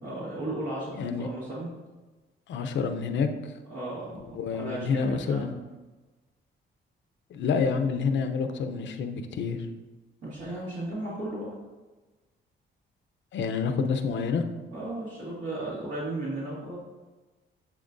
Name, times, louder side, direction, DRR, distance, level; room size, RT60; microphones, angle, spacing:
voice 1, 0.0-1.7 3.7-5.4 10.2-11.5 14.7-16.8, right 1 dB, 70° right, -7 dB, 2.2 m, -35 dB
voice 2, 0.9-1.3 2.5-3.5 4.3-5.5 7.3-9.7 13.3-14.4, left 5 dB, 70° left, 7 dB, 0.7 m, -28 dB
11.0 x 4.2 x 2.6 m, 1.2 s
cardioid pair, 90°, 20 cm